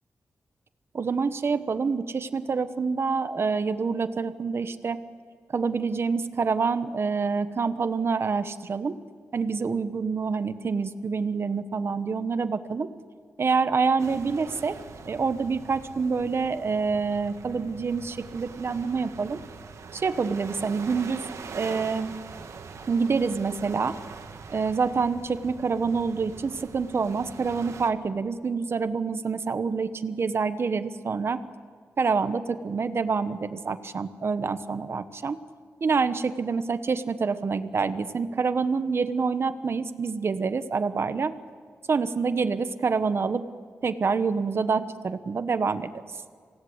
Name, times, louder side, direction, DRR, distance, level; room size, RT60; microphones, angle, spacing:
voice 1, 0.9-5.0 5.5-8.9 9.3-12.9 13.4-14.8 15.1-19.4 19.9-21.2 21.5-22.2 22.9-24.0 24.5-31.4 32.0-35.4 35.8-41.3 41.9-43.4 43.8-45.9, right 5 dB, 50° right, 11 dB, 1.2 m, -27 dB
sound 1, 14.0-27.9, right 5 dB, 70° right, 1.7 m, -43 dB
26.5 x 17.5 x 8.1 m, 2.1 s
wide cardioid pair, 100°, 5 cm